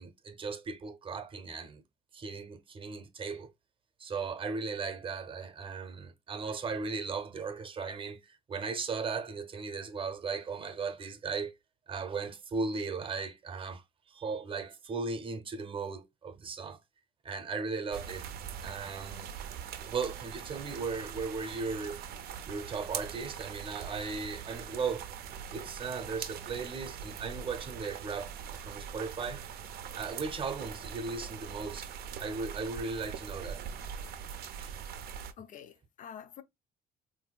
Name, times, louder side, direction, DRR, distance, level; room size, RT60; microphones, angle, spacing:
voice 1, 0.0-1.8 2.1-3.5 4.0-11.5 11.9-16.8 17.2-18.2 18.6-19.3 19.8-22.0 22.5-25.1 25.5-29.4 29.9-31.9 32.2-33.6 34.6-34.7, right 4 dB, 30° right, 0.8 m, -37 dB
sound 1, 17.9-35.3, right 8 dB, 65° right, 0.5 m, -42 dB
voice 2, 35.4-36.4, left 8 dB, 50° left, 0.5 m, -47 dB
3.7 x 2.6 x 2.3 m
cardioid pair, 110°, 17 cm